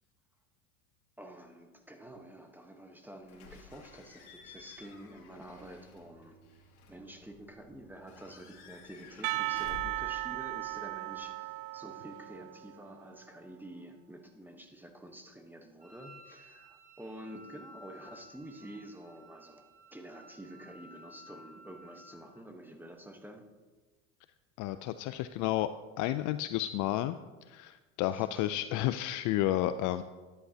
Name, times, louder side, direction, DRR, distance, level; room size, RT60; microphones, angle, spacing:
voice 1, 1.2-6.4 6.9-23.5 28.1-28.4 28.7-28.8, right 1 dB, 5° right, 5 dB, 1.1 m, -49 dB
Slam / Squeak / Alarm, 3.3-11.2, left 5 dB, 75° left, 2.0 m, -53 dB
Percussion, 9.2-13.1, right 21 dB, 65° right, 0.5 m, -36 dB
Wind instrument woodwind instrument, 15.8-22.4, equal, 20° right, 3.2 m, -55 dB
voice 2, 24.6-25.7 26.0-27.2 27.5-30.0, left 14 dB, 45° left, 12 dB, 0.4 m, -31 dB
12.5 x 10.5 x 2.8 m, 1.3 s
hypercardioid pair, 95°, 44 cm